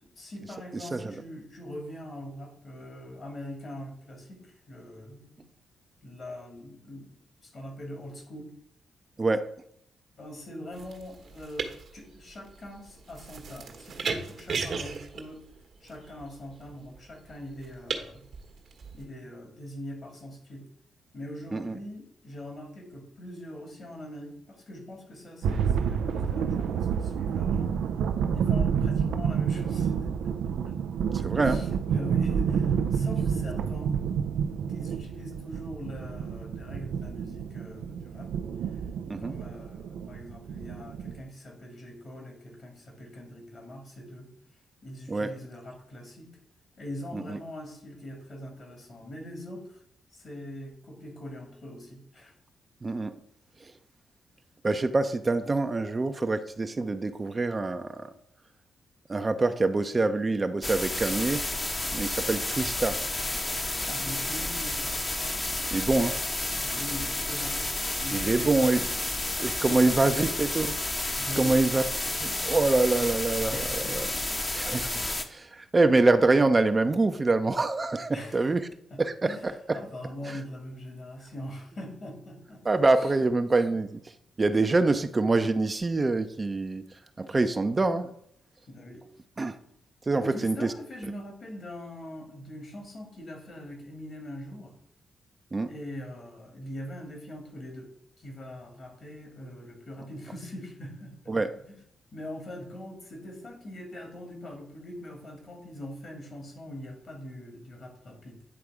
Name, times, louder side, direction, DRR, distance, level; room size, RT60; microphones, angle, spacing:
voice 1, 0.1-5.5 6.0-7.1 7.4-8.5 10.2-15.4 15.8-18.3 18.9-20.7 21.1-27.8 28.3-30.3 30.6-30.8 31.4-33.9 34.7-38.3 39.2-44.3 44.8-46.3 46.8-49.8 50.1-52.3 62.3-62.5 63.9-65.0 66.6-67.6 68.0-69.1 69.6-70.3 71.2-71.6 73.5-74.4 75.1-75.3 78.1-78.5 78.9-79.5 79.7-82.6 83.0-83.1 88.7-89.0 90.2-94.8 95.7-97.9 98.2-101.3 101.6-101.8 102.1-108.5, left 1 dB, 55° left, 2.6 m, -42 dB
voice 2, 9.2-9.5 21.5-21.7 31.1-31.6 39.1-39.3 45.1-45.3 47.1-47.4 52.8-53.1 53.6-53.7 54.6-58.1 59.1-61.4 61.9-63.0 65.7-66.2 68.1-68.8 69.4-70.7 71.4-71.8 72.2-74.1 74.5-74.9 75.3-78.6 79.0-79.8 80.3-80.4 82.6-84.0 84.4-86.8 87.2-88.1 89.4-89.6 90.1-90.7 95.5-95.7 101.3-101.5, right 3 dB, 35° right, 0.6 m, -25 dB
sound 1, 10.7-19.0, right 5 dB, 65° right, 1.3 m, -37 dB
sound 2, 25.4-41.2, right 7 dB, 80° right, 0.4 m, -29 dB
sound 3, 60.6-75.2, left 2 dB, 30° left, 1.0 m, -31 dB
9.6 x 3.4 x 4.9 m
supercardioid pair, 55°, 0 cm